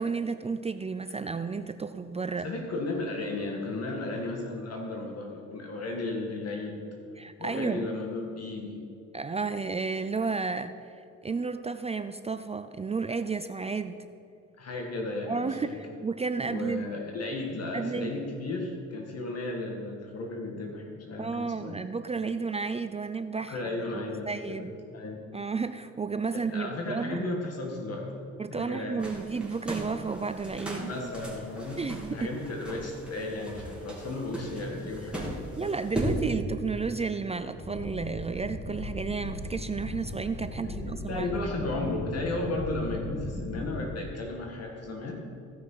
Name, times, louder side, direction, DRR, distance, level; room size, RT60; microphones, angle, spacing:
voice 1, 0.0-2.5 7.2-7.9 9.1-14.1 15.3-16.9 17.7-18.1 21.2-23.6 23.9-24.8 25.3-27.2 28.4-30.9 31.8-32.4 35.5-42.0, right 4 dB, 20° right, 10 dB, 0.4 m, -32 dB
voice 2, 2.4-6.8 7.4-8.8 14.6-15.8 16.4-21.8 23.5-24.7 24.9-25.2 26.3-28.2 28.5-29.0 30.8-31.8 32.1-35.7 40.6-45.2, left 2 dB, 55° left, 0 dB, 1.9 m, -34 dB
sound 1, 29.0-36.2, right 1 dB, 5° right, 3.1 m, -37 dB
sound 2, 37.6-43.9, left 2 dB, 30° left, 1.9 m, -37 dB
16.0 x 6.0 x 5.7 m, 2.7 s
cardioid pair, 90°, 30 cm